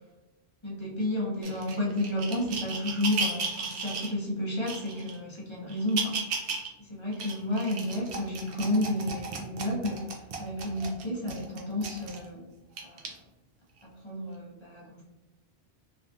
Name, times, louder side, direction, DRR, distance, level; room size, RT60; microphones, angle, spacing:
voice 1, 0.6-6.2 6.9-12.5 12.8-13.1 13.8-15.1, left 1 dB, 30° left, -4 dB, 0.6 m, -31 dB
sound 1, 1.4-4.1 4.7-5.2 5.7-6.7 7.1-12.2 12.8-13.1 13.8-13.9, right 4 dB, 65° right, 0.7 m, -35 dB
3.2 x 2.3 x 2.5 m, 1.0 s
omnidirectional pair, 1.1 m